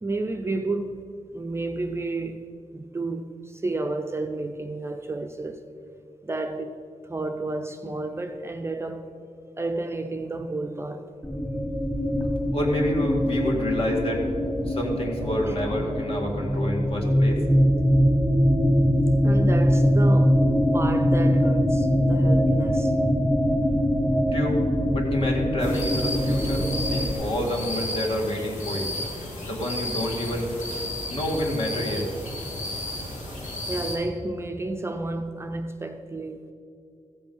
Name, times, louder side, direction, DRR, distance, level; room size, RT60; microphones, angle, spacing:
voice 1, 0.0-2.5 2.7-5.6 6.2-6.7 7.0-9.1 9.6-11.1 15.4-15.6 19.2-20.4 20.7-22.9 33.7-36.4, right 2 dB, 20° right, 0.5 m, -31 dB
sound 1, 11.2-27.1, equal, 10° left, 1.6 m, -22 dB
voice 2, 12.5-14.2 14.7-17.4 24.3-24.6 24.9-29.0 29.4-30.5 31.1-32.1, left 1 dB, 50° left, 2.1 m, -28 dB
sound 2, 25.6-34.0, left 1 dB, 80° left, 2.4 m, -33 dB
15.0 x 7.7 x 5.4 m
wide cardioid pair, 155°, 12 cm